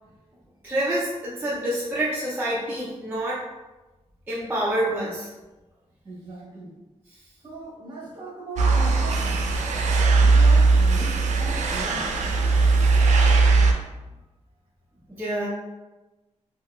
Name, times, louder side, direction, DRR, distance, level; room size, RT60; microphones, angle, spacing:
voice 1, 0.6-3.4 4.3-5.3 15.2-15.5, right 1 dB, 15° right, -7 dB, 0.4 m, -27 dB
voice 2, 6.0-6.8 7.4-9.5 10.1-12.1, right 2 dB, 40° right, -6 dB, 1.0 m, -38 dB
sound 1, 8.6-13.7, right 3 dB, 85° right, 0.4 m, -19 dB
3.6 x 2.2 x 2.2 m, 1.1 s
wide cardioid pair, 145°, 12 cm